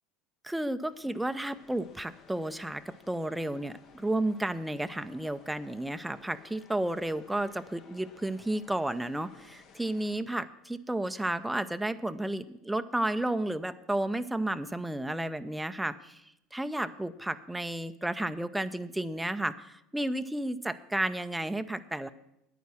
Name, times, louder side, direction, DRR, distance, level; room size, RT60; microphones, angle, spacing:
voice 1, 0.4-16.2 16.5-22.1, right 1 dB, 5° right, 10 dB, 0.6 m, -32 dB
sound 1, 0.9-10.2, left 6 dB, 50° left, 1.2 m, -57 dB
10.5 x 9.4 x 6.2 m, 0.84 s
hypercardioid pair, 80°, 0 cm